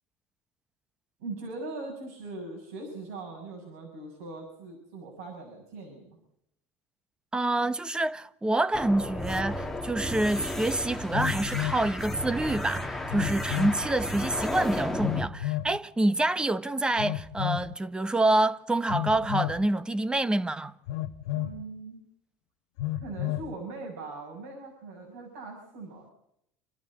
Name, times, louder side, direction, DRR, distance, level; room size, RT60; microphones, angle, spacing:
voice 1, 1.2-6.2 21.3-22.0 23.0-26.1, right 3 dB, 90° right, 6.8 m, -40 dB
voice 2, 7.3-20.7, right 2 dB, 10° right, 1.1 m, -27 dB
sound 1, 8.7-15.3, left 1 dB, 5° left, 1.9 m, -33 dB
Telephone, 9.8-9.9 11.1-11.9 13.1-13.8 15.0-15.7 17.0-17.7 18.9-19.6 20.9-21.6 22.8-23.5, left 14 dB, 80° left, 1.1 m, -31 dB
28.5 x 12.5 x 8.7 m
supercardioid pair, 105°, 7 cm